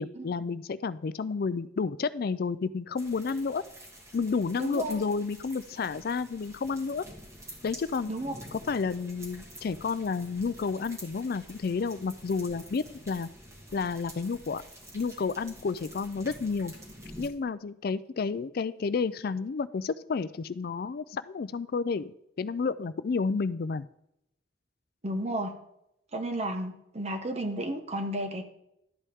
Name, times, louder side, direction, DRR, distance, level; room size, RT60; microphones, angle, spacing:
voice 1, 0.0-3.6 4.1-7.0 7.6-8.1 8.5-13.3 13.7-14.6 14.9-16.7 17.2-23.9, left 4 dB, 55° left, 15 dB, 0.4 m, -31 dB
sound 1, 3.0-17.3, equal, 15° right, 1.6 m, -48 dB
voice 2, 4.6-5.0 8.1-8.3 25.0-25.5 26.1-28.5, right 1 dB, 35° right, 6 dB, 1.3 m, -32 dB
12.0 x 8.3 x 3.6 m, 0.79 s
head